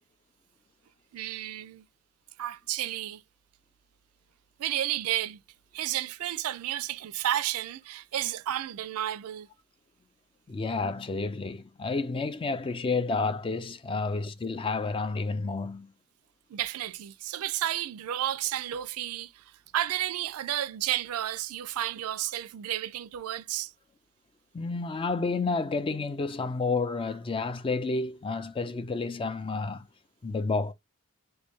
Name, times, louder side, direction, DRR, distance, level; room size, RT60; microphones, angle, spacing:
voice 1, 1.1-1.8 2.4-3.2 4.6-5.4 5.7-9.5 16.5-19.4 19.7-23.7, right 12 dB, 75° right, 0.4 m, -32 dB
voice 2, 10.5-15.9 24.5-29.9 30.2-30.7, left 3 dB, 25° left, 0.3 m, -30 dB
3.3 x 2.2 x 3.0 m
head